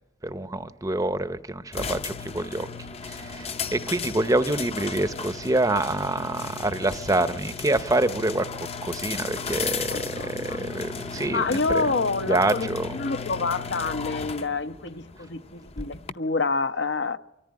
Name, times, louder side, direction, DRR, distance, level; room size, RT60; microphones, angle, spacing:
voice 1, 0.2-2.7 3.0-8.5 8.8-11.9 12.3-13.0, right 2 dB, 20° right, 0.7 m, -26 dB
sound 1, 1.7-16.1, left 5 dB, 35° left, 0.7 m, -35 dB
voice 2, 9.9-10.6 11.3-17.2, left 3 dB, 65° left, 0.8 m, -28 dB
25.0 x 14.5 x 9.6 m
head